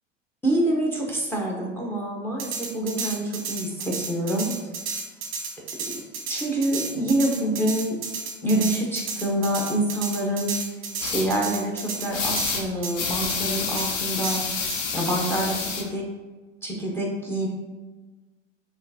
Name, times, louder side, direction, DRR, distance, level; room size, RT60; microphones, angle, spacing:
voice 1, 0.4-4.5 6.3-8.0 8.4-10.5 11.0-14.4 14.9-16.0 16.6-17.5, right 1 dB, 5° left, -2 dB, 0.8 m, -26 dB
sound 1, 2.4-12.6 12.8-12.9 13.3-13.4 13.8-13.9 14.2-14.8, right 5 dB, 35° right, 0.9 m, -33 dB
sound 2, 11.0-11.3 12.1-12.6 12.9-15.8, left 5 dB, 40° left, 0.9 m, -28 dB
4.8 x 3.3 x 2.8 m, 1.2 s
hypercardioid pair, 90°, 38 cm